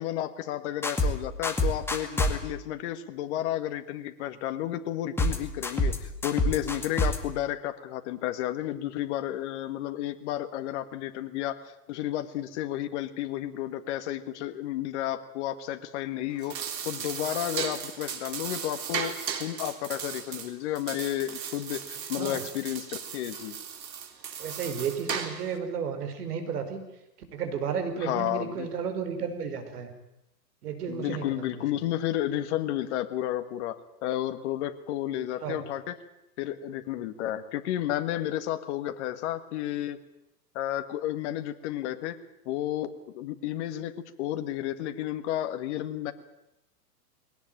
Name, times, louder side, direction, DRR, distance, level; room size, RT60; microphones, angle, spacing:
voice 1, 0.0-11.6 11.9-16.5 16.8-19.1 19.4-23.6 28.0-28.7 30.9-33.8 34.0-36.0 36.4-40.0 40.5-42.2 42.4-46.1, left 13 dB, 45° left, 8 dB, 1.7 m, -32 dB
sound 1, 0.8-1.1 1.4-2.3 5.2-5.4 5.6-6.0 6.2-7.2, left 1 dB, 5° left, 2.0 m, -25 dB
sound 2, 16.3-25.6, right 7 dB, 85° right, 3.6 m, -36 dB
voice 2, 24.4-26.8 27.3-29.9 30.6-31.5 35.4-35.6, right 6 dB, 65° right, 8 dB, 5.3 m, -33 dB
21.0 x 18.5 x 9.1 m, 0.87 s
hypercardioid pair, 145°, 49 cm